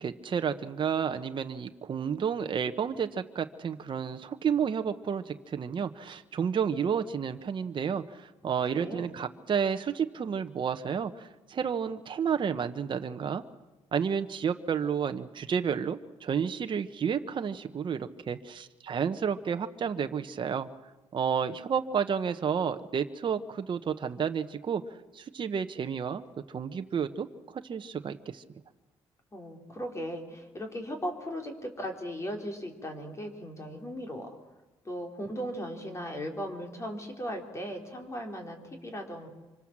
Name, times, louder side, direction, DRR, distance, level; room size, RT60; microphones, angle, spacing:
voice 1, 0.0-13.4 13.9-20.7 21.1-24.8 25.1-28.4, right 7 dB, 45° right, 7 dB, 1.0 m, -31 dB
voice 2, 8.7-9.1 29.3-34.3 34.8-39.3, equal, 25° left, 3 dB, 4.1 m, -37 dB
25.5 x 25.0 x 7.4 m, 1.1 s
cardioid pair, 105°, 11 cm